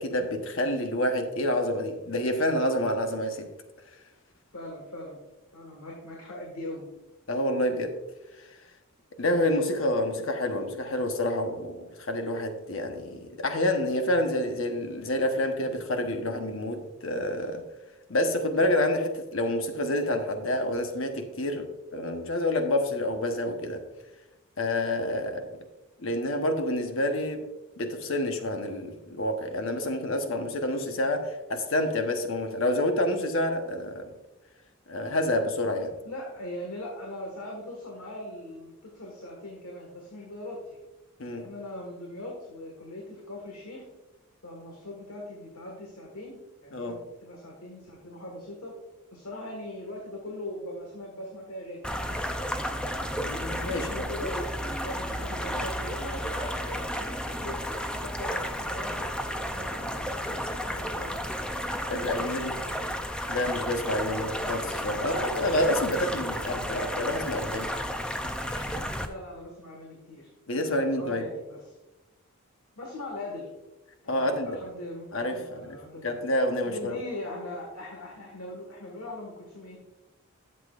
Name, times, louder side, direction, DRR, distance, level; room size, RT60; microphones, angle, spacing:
voice 1, 0.0-3.5 7.3-7.9 9.2-17.6 18.1-23.8 24.6-25.5 26.0-27.4 27.8-34.1 34.9-36.0 41.2-41.5 46.7-47.0 53.2-54.1 61.9-62.6 63.3-67.7 68.5-68.8 70.5-71.3 74.1-74.6 75.1-77.0, left 1 dB, 65° left, 5 dB, 1.1 m, -28 dB
voice 2, 4.5-5.2 5.5-6.9 36.0-40.6 41.3-43.9 44.4-48.7 49.1-52.2 53.7-61.2 62.0-63.0 66.1-66.8 69.0-70.3 70.6-71.7 72.8-73.5 74.0-76.2 76.6-79.8, left 1 dB, 90° left, -1 dB, 1.7 m, -41 dB
sound 1, 51.8-69.1, equal, 5° left, 0.4 m, -32 dB
11.5 x 7.4 x 2.5 m, 1.0 s
head